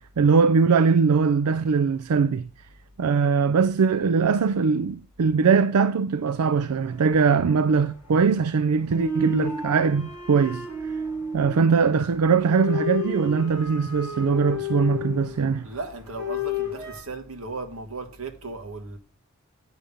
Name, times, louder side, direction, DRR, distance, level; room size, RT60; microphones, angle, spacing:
voice 1, 0.2-2.5 3.0-10.7 11.3-15.7, right 5 dB, 85° right, 0.4 m, -21 dB
sound 1, 6.6-17.0, left 2 dB, 10° right, 3.4 m, -33 dB
voice 2, 15.6-19.0, right 3 dB, 65° right, 1.4 m, -36 dB
8.9 x 5.3 x 6.9 m
head